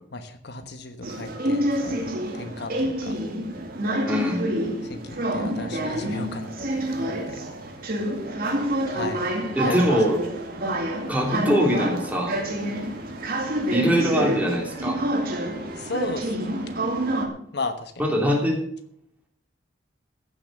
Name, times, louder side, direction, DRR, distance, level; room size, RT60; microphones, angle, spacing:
voice 1, 0.1-3.2 4.8-7.4 8.9-9.3 9.6-10.0 15.8-16.5 17.5-18.0, left 3 dB, 65° left, 8 dB, 1.2 m, -35 dB
sound 1, 1.0-17.3, right 1 dB, 55° right, 2.4 m, -28 dB
voice 2, 4.0-4.4 9.6-10.2 11.1-12.4 13.7-15.0 18.0-18.6, equal, 10° right, 0 dB, 3.2 m, -22 dB
15.0 x 7.1 x 6.6 m, 0.64 s
head